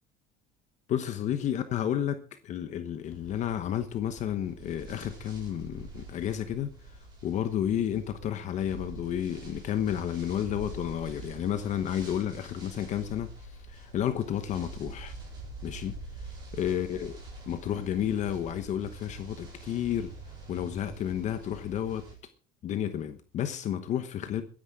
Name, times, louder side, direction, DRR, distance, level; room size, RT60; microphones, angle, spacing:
voice 1, 0.9-6.7 7.2-15.1 15.6-16.0 16.5-17.1 17.5-20.1 20.5-22.1 22.6-24.4, left 10 dB, 40° left, 1.0 m, -31 dB
sound 1, 3.0-22.2, right 2 dB, 25° right, 6.8 m, -45 dB
23.5 x 10.0 x 3.7 m
cardioid pair, 170°, 19 cm